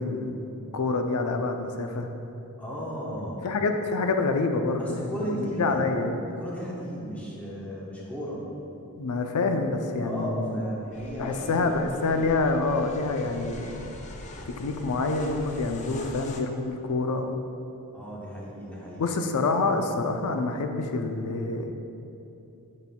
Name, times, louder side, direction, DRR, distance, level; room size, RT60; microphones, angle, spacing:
voice 1, 0.0-2.1 3.4-6.1 9.0-10.6 11.2-13.9 14.5-17.4 19.0-21.7, left 3 dB, 90° left, 6 dB, 0.5 m, -27 dB
voice 2, 2.6-3.5 4.8-5.8 6.4-8.4 10.0-12.1 17.9-19.0, equal, 5° left, -6 dB, 1.0 m, -35 dB
sound 1, 10.9-16.4, left 2 dB, 30° left, 0.4 m, -43 dB
8.1 x 5.3 x 2.2 m, 2.8 s
head